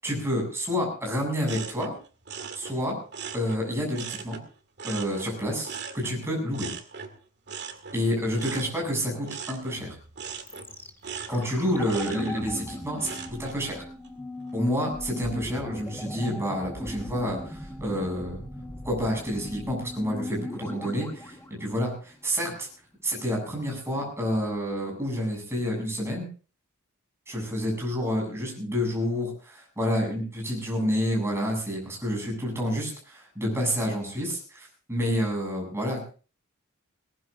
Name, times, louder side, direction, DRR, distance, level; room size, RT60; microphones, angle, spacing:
voice 1, 0.0-1.9 2.6-3.0 3.3-4.4 4.8-6.7 7.9-9.9 11.1-13.9 14.5-18.4 18.8-22.7 23.0-26.3 27.3-36.1, equal, 10° right, -1 dB, 7.7 m, -29 dB
sound 1, 1.4-4.5 4.8-13.6 14.0-14.5, right 6 dB, 55° right, 2.2 m, -40 dB
sound 2, 10.5-22.5 22.7-22.8, left 1 dB, 10° left, 1.5 m, -39 dB
21.5 x 19.0 x 2.6 m, 0.38 s
head